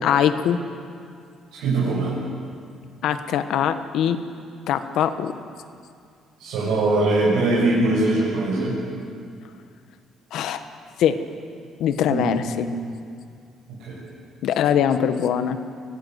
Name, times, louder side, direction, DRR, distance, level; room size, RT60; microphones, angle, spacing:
voice 1, 0.0-0.6 3.0-4.2 4.7-5.3 10.3-10.6 11.0-11.2 11.8-12.7 14.4-15.6, left 9 dB, 70° left, 10 dB, 1.3 m, -22 dB
voice 2, 1.6-2.1 6.4-8.7 12.1-12.3 13.9-14.0, right 2 dB, 85° right, -7 dB, 7.2 m, -21 dB
24.5 x 17.5 x 8.2 m, 2.3 s
cardioid pair, 140°, 0 cm